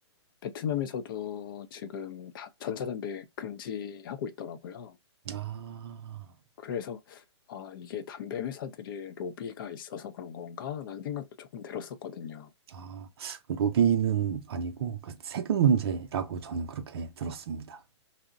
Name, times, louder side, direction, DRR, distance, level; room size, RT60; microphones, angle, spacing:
voice 1, 0.4-5.0 6.6-7.2 7.5-12.5, left 8 dB, 50° left, 0.4 m, -37 dB
voice 2, 5.3-6.2 12.7-17.8, right 8 dB, 60° right, 0.5 m, -29 dB
2.7 x 2.0 x 2.4 m
hypercardioid pair, 125°, 15 cm